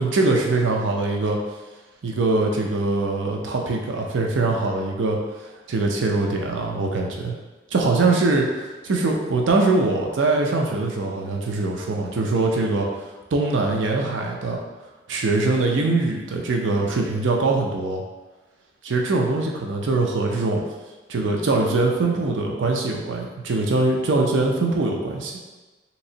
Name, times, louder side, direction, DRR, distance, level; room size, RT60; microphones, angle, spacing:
voice 1, 0.0-1.4 2.0-5.2 5.7-7.3 7.7-8.5 8.8-12.9 13.3-14.6 15.1-18.0 18.8-20.6 21.1-25.3, right 3 dB, 90° right, 1 dB, 0.5 m, -22 dB
3.3 x 2.9 x 2.8 m, 1.2 s
head